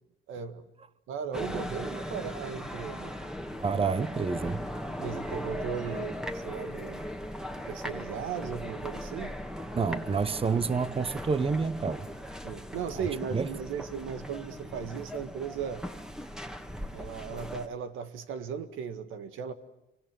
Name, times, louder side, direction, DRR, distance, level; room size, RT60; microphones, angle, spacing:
voice 1, 0.3-0.7 1.1-3.1 5.0-7.1 7.7-9.4 12.4-15.9 16.9-19.5, right 7 dB, 90° right, 1.9 m, -37 dB
sound 1, 1.3-17.7, equal, 5° right, 1.9 m, -39 dB
voice 2, 3.6-4.6 9.7-12.1 13.3-13.5, right 5 dB, 30° right, 1.0 m, -28 dB
27.5 x 24.5 x 7.7 m
cardioid pair, 90°, 20 cm